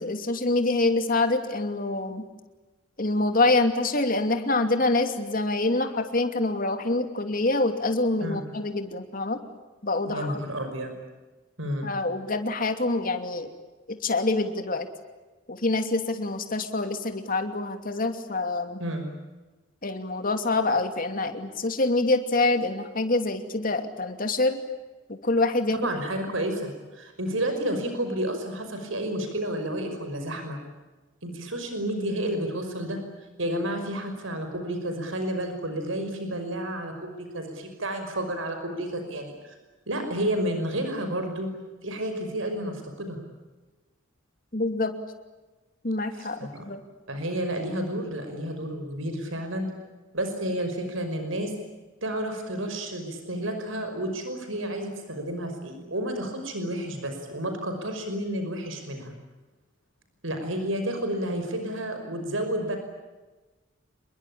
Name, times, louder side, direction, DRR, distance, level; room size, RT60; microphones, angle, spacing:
voice 1, 0.0-2.2 3.0-9.4 9.8-10.4 11.8-13.5 13.9-14.9 15.5-18.8 19.8-24.6 25.2-25.8 44.5-44.9 45.8-46.4 46.7-46.8, left 2 dB, 45° left, 7 dB, 2.8 m, -26 dB
voice 2, 10.1-10.9 11.6-11.9 18.8-19.1 25.8-30.6 31.2-33.0 33.4-39.5 39.9-41.5 41.8-43.2 46.1-46.6 47.1-49.7 50.1-51.5 52.0-59.1 60.2-62.8, right 1 dB, 90° right, 6 dB, 5.6 m, -31 dB
28.0 x 22.5 x 8.8 m, 1.2 s
head